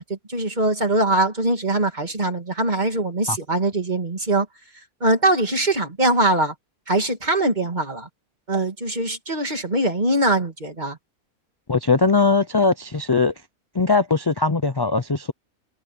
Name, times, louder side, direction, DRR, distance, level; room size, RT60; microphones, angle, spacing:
voice 1, 0.0-4.5 5.0-6.5 6.9-8.1 8.5-11.0, right 1 dB, 30° right, 2.8 m, -22 dB
voice 2, 11.7-13.3 13.7-15.3, left 4 dB, 35° left, 0.3 m, -20 dB
omnidirectional pair, 1.5 m